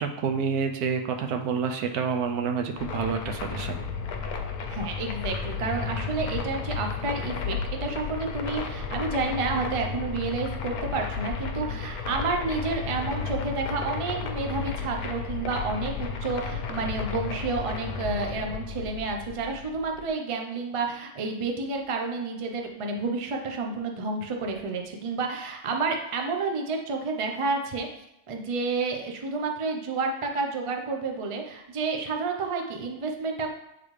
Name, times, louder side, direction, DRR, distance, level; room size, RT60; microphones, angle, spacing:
voice 1, 0.0-3.8, right 6 dB, 85° right, 5 dB, 1.2 m, -28 dB
sound 1, 2.8-20.1, left 5 dB, 80° left, 1.1 m, -33 dB
voice 2, 4.7-27.9 28.3-33.5, right 4 dB, 55° right, 2 dB, 0.3 m, -30 dB
7.6 x 3.9 x 3.2 m, 0.85 s
omnidirectional pair, 1.6 m